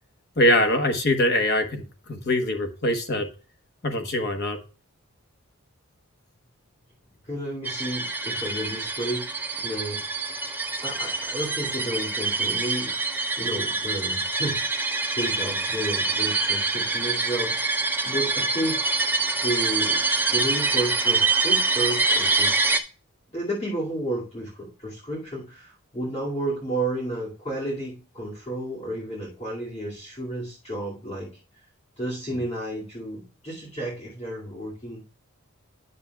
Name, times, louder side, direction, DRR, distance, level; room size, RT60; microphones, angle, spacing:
voice 1, 0.4-3.3 3.8-4.6, left 1 dB, 45° left, 6 dB, 1.1 m, -23 dB
voice 2, 7.3-9.3 9.5-10.0 10.8-13.0 13.4-18.8 19.4-22.8 23.3-31.3 32.0-35.0, right 1 dB, 30° left, -5 dB, 2.3 m, -32 dB
sound 1, 7.7-22.8, right 3 dB, 10° right, 0.5 m, -25 dB
9.7 x 6.8 x 2.3 m, 0.36 s
head